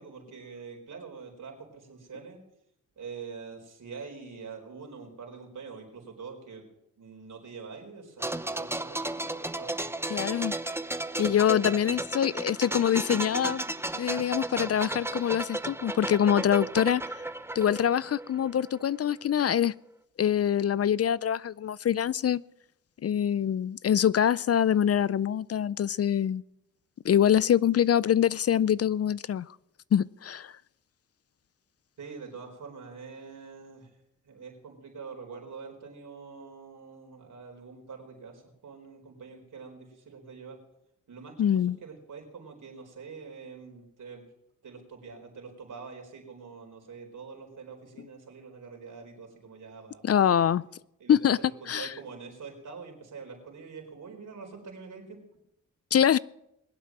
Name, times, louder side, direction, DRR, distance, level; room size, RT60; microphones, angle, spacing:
voice 1, 0.0-2.4 3.0-6.6 7.0-9.7 11.7-11.9 32.0-34.0 34.2-40.6 41.1-44.2 44.6-50.5 51.0-55.2, right 5 dB, 70° right, 4.6 m, -45 dB
sound 1, 8.2-18.8 19.1-19.3, right 2 dB, 10° right, 0.8 m, -34 dB
voice 2, 10.1-10.5 11.2-13.6 14.0-17.0 17.6-19.7 20.2-22.4 23.0-26.4 27.0-29.5 29.9-30.5 41.4-41.8 50.0-50.6 51.1-51.4 51.7-51.9 55.9-56.2, left 9 dB, 50° left, 0.5 m, -24 dB
21.5 x 8.3 x 7.4 m
cardioid pair, 60°, 32 cm